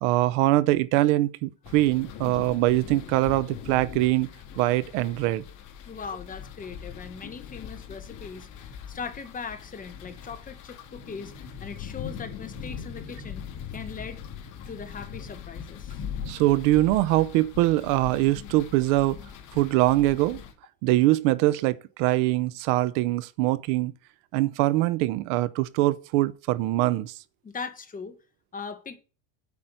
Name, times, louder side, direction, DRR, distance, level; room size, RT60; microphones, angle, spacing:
voice 1, 0.0-4.3 4.6-5.4 16.3-19.2 19.5-20.4 20.8-23.9 24.3-27.1, right 17 dB, 90° right, 0.8 m, -23 dB
sound 1, 1.6-20.5, left 7 dB, 50° left, 2.5 m, -41 dB
voice 2, 5.9-13.5 13.7-14.2 14.7-16.0 27.4-28.2 28.5-29.0, left 5 dB, 20° left, 1.2 m, -39 dB
8.5 x 5.7 x 7.8 m
cardioid pair, 140°, 37 cm